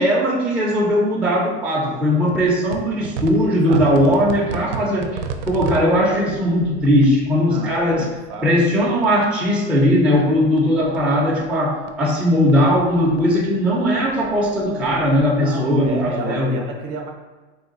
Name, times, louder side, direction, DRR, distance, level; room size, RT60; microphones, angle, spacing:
voice 1, 0.0-5.2 5.5-8.1 8.4-16.6, equal, 5° right, -4 dB, 0.5 m, -18 dB
sound 1, 2.3-9.5 9.8-12.1 12.4-15.3, right 5 dB, 80° right, 0.6 m, -34 dB
voice 2, 3.4-4.3 5.7-6.0 7.5-8.6 12.5-12.8 15.4-17.1, right 3 dB, 40° right, 2 dB, 0.8 m, -33 dB
3.7 x 2.3 x 3.9 m, 1.3 s
supercardioid pair, 125°, 36 cm